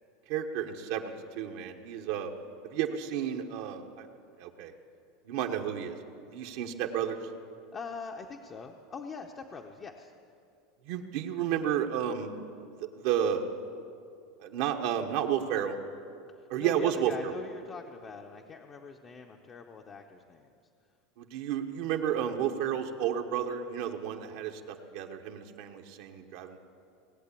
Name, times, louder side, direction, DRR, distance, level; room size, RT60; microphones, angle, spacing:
voice 1, 0.3-2.3 2.6-4.1 4.4-4.7 5.2-5.9 6.3-7.2 10.8-12.3 12.8-13.4 14.4-15.8 16.5-17.3 21.2-26.6, right 9 dB, 65° right, 3 dB, 1.1 m, -32 dB
voice 2, 7.7-10.1 16.4-20.5, left 5 dB, 30° left, 3 dB, 0.8 m, -43 dB
18.5 x 8.0 x 8.4 m, 2.5 s
supercardioid pair, 135°, 0 cm